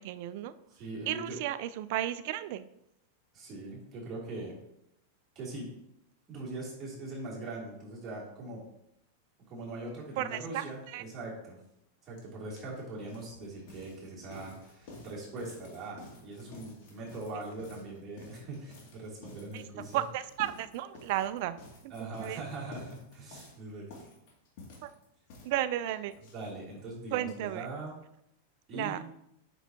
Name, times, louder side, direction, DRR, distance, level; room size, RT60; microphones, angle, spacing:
voice 1, 0.0-0.5 1.1-2.7 10.2-11.0 19.5-19.6 19.9-21.6 21.8-21.9 22.2-22.4 24.8-24.9 25.4-26.1 27.1-27.7 28.7-29.0, right 13 dB, 55° right, 14 dB, 0.4 m, -33 dB
voice 2, 0.7-1.4 3.3-4.6 5.3-5.7 6.3-8.6 9.5-11.6 12.0-20.0 21.9-23.9 26.3-27.9 28.7-29.1, right 2 dB, 30° right, -6 dB, 2.9 m, -41 dB
sound 1, 12.2-12.3 12.5-26.9 27.2-27.3 27.5-27.6 27.9-28.0, left 2 dB, 55° left, 2.4 m, -51 dB
7.9 x 6.1 x 2.9 m, 0.79 s
supercardioid pair, 135°, 0 cm